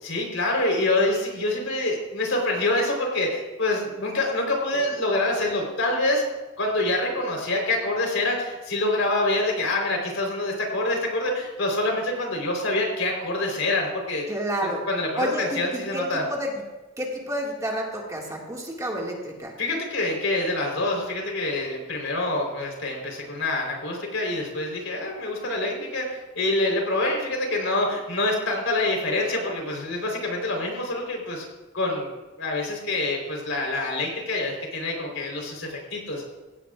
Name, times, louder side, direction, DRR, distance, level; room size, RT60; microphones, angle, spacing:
voice 1, 0.0-6.2 6.6-14.3 14.6-16.2 19.6-31.5 31.7-32.1 32.4-36.2, left 2 dB, 70° left, 0 dB, 4.1 m, -26 dB
voice 2, 14.3-14.8 15.2-16.5 17.0-19.5, equal, 15° right, -2 dB, 2.1 m, -30 dB
17.0 x 16.5 x 2.5 m, 1.1 s
head